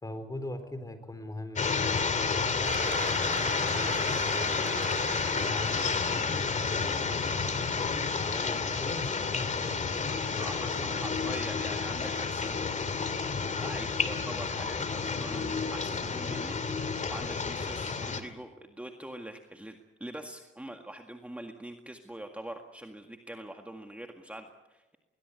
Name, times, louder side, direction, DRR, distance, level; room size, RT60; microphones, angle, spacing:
voice 1, 0.0-3.1 3.7-4.9 5.5-11.2, left 1 dB, 15° left, 9 dB, 4.1 m, -42 dB
sound 1, 1.6-18.2, left 5 dB, 40° left, 2.5 m, -30 dB
Cheering / Applause, 2.7-7.6, right 8 dB, 80° right, 4.1 m, -42 dB
voice 2, 10.4-13.1 13.3-25.0, right 1 dB, 5° right, 4 dB, 1.9 m, -44 dB
21.0 x 20.0 x 8.3 m, 1.1 s
cardioid pair, 90°, 20 cm